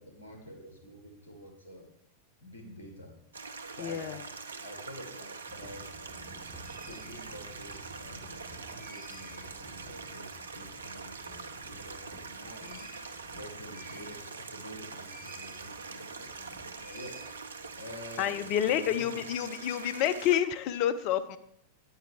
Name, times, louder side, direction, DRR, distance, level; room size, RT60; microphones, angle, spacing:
voice 1, 0.0-1.9 2.4-3.2 3.7-4.2 4.6-6.5 6.8-12.8 13.3-17.2 17.7-19.2, equal, 75° left, 3 dB, 1.8 m, -48 dB
Stream, 3.3-20.4, right 4 dB, 70° right, 0.6 m, -44 dB
voice 2, 3.8-4.2 18.2-21.4, left 10 dB, 45° left, 13 dB, 0.6 m, -29 dB
sound 1, 5.5-14.5 15.0-15.7 16.0-17.8, right 1 dB, 5° right, 3.5 m, -52 dB
8.9 x 8.8 x 3.5 m, 0.72 s
figure-of-eight pair, 90°, 0 cm